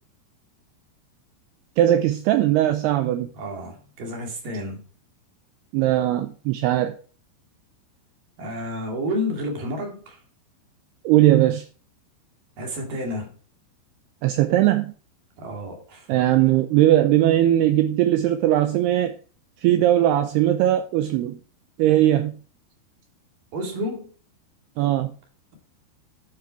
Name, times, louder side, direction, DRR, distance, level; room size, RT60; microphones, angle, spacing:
voice 1, 1.8-3.3 5.7-6.9 11.1-11.7 14.2-14.9 16.1-19.2 19.6-21.4 21.8-22.3 24.8-25.1, right 13 dB, 90° right, 2.3 m, -19 dB
voice 2, 3.3-4.8 8.4-10.2 12.6-13.3 15.4-16.2 17.4-17.5 23.5-24.1, left 1 dB, 55° right, 3.7 m, -30 dB
11.5 x 5.9 x 4.6 m
omnidirectional pair, 5.3 m